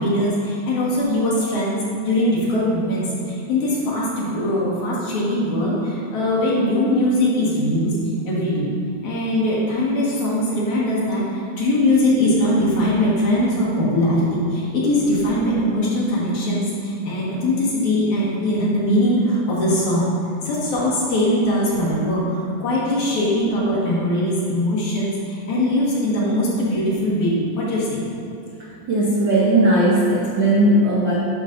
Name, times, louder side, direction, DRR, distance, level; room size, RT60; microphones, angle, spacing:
voice 1, 0.0-1.8 2.1-8.0 8.3-8.7 9.0-20.1 20.4-28.0, left 1 dB, 75° left, -7 dB, 3.0 m, -21 dB
voice 2, 28.9-31.1, right 1 dB, 90° right, -6 dB, 1.0 m, -17 dB
11.0 x 5.6 x 2.6 m, 2.6 s
omnidirectional pair, 3.4 m